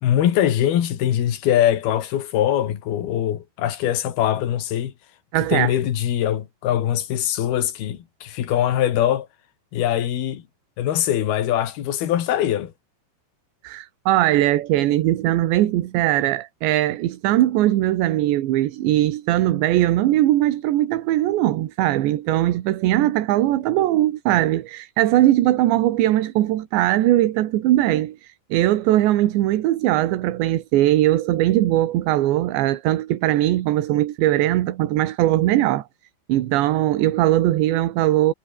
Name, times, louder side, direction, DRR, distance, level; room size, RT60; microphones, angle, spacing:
voice 1, 0.0-4.9 5.5-9.3 9.7-10.4 10.8-12.7, left 11 dB, 60° left, 3.8 m, -22 dB
voice 2, 5.3-5.7 13.6-35.8 36.3-38.3, right 14 dB, 70° right, 3.5 m, -20 dB
omnidirectional pair, 5.5 m